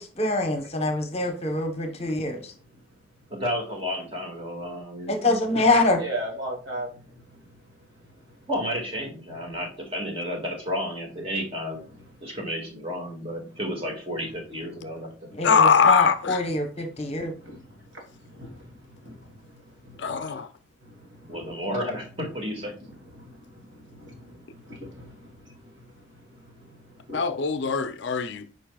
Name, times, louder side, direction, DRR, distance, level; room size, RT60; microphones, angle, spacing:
voice 1, 0.0-2.4 5.1-6.0 15.4-17.3, left 2 dB, 30° left, 1.0 m, -25 dB
voice 2, 3.3-5.4 8.5-11.8 12.2-15.5 21.3-22.7, equal, 30° right, 1.9 m, -32 dB
voice 3, 6.0-6.9 7.3-7.4 17.4-17.7 18.1-19.5 19.8-20.2 20.8-21.4 23.2-25.8 26.4-26.8 27.1-27.2, right 1 dB, 60° right, 2.5 m, -39 dB
voice 4, 15.4-16.4 20.0-20.5 27.1-28.5, left 6 dB, 55° left, 0.5 m, -21 dB
8.7 x 5.3 x 2.3 m
head